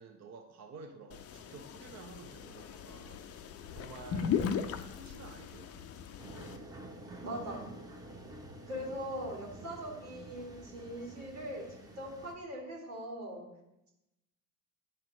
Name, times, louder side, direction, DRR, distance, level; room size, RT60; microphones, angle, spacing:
voice 1, 0.0-3.2 3.7-4.5 4.8-5.9, right 4 dB, 35° right, 3 dB, 0.9 m, -51 dB
sound 1, 1.1-6.6, left 7 dB, 35° left, 0.6 m, -38 dB
sound 2, 6.2-12.3, right 1 dB, 10° right, 1.0 m, -49 dB
voice 2, 7.2-7.7 8.7-13.5, equal, 80° right, -2 dB, 2.2 m, -41 dB
9.8 x 4.3 x 4.0 m, 0.90 s
hypercardioid pair, 60°, 45 cm